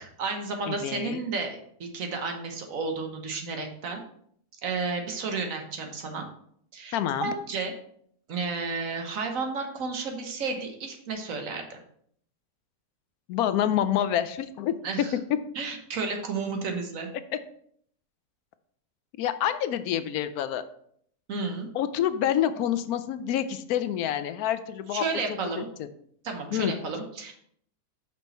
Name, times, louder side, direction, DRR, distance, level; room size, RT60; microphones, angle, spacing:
voice 1, 0.0-4.0 4.6-6.3 6.7-7.7 8.3-11.8 14.8-15.1 15.5-17.1 21.3-21.7 24.9-25.7 26.2-27.3, right 4 dB, 65° right, 4 dB, 1.5 m, -32 dB
voice 2, 0.7-1.2 6.9-7.3 13.3-14.7 19.2-20.6 21.7-25.0 25.8-25.9 26.5-26.7, left 10 dB, 85° left, 12 dB, 1.1 m, -27 dB
6.3 x 5.3 x 4.2 m, 0.64 s
omnidirectional pair, 1.5 m